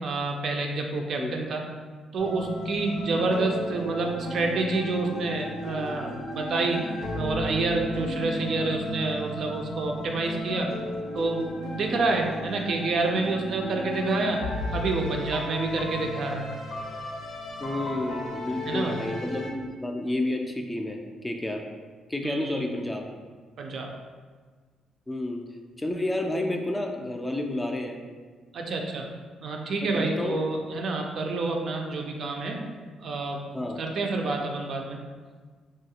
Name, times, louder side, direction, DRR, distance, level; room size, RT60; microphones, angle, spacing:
voice 1, 0.0-1.6 2.1-6.8 7.1-10.7 11.1-14.4 14.7-16.5 18.7-19.0 22.2-22.6 23.6-23.9 28.5-29.1 29.4-32.6 33.0-35.0, right 3 dB, 65° right, 2 dB, 0.4 m, -28 dB
sound 1, 2.2-19.5, left 1 dB, 70° left, 0.5 m, -35 dB
voice 2, 17.6-21.6 22.1-23.1 25.1-25.4 25.8-28.0 29.9-30.6 33.5-33.8, left 1 dB, 10° left, 2 dB, 0.3 m, -30 dB
3.1 x 2.3 x 2.8 m, 1.5 s
cardioid pair, 90°, 0 cm